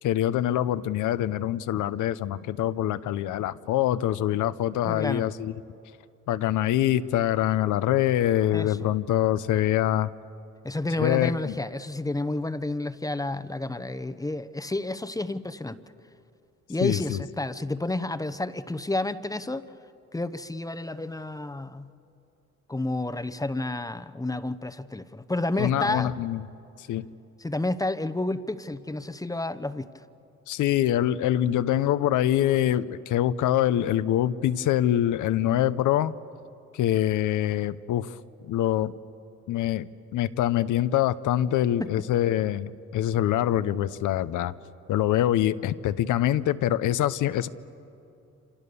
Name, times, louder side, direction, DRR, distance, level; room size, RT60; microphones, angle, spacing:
voice 1, 0.0-5.5 6.3-10.1 11.0-11.5 16.8-17.2 25.5-26.5 26.8-27.1 30.5-36.1 36.7-38.1 38.5-38.9 39.5-44.5 44.9-47.5, left 12 dB, 85° left, 13 dB, 0.8 m, -24 dB
voice 2, 4.8-5.3 8.5-8.9 10.6-15.8 16.7-19.6 20.1-21.9 22.7-26.1 27.4-29.9 41.8-41.9, left 2 dB, 10° left, 11 dB, 0.9 m, -30 dB
27.5 x 27.5 x 6.9 m, 2.7 s
cardioid pair, 90°, 30 cm